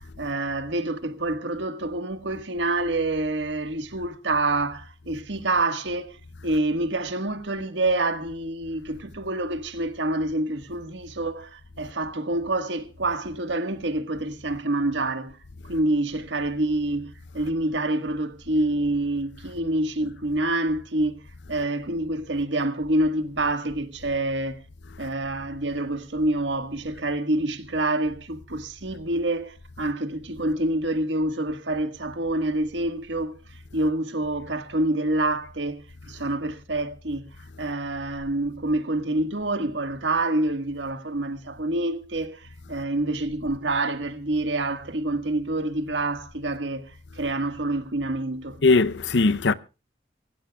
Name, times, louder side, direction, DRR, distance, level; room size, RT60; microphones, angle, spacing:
voice 1, 0.2-6.2 6.4-15.3 15.7-21.2 21.5-24.6 25.0-33.4 33.7-37.3 37.6-46.9 47.2-48.6, right 2 dB, 85° right, 1.6 m, -27 dB
voice 2, 48.6-49.5, left 3 dB, 80° left, 0.7 m, -20 dB
25.5 x 15.5 x 2.3 m
head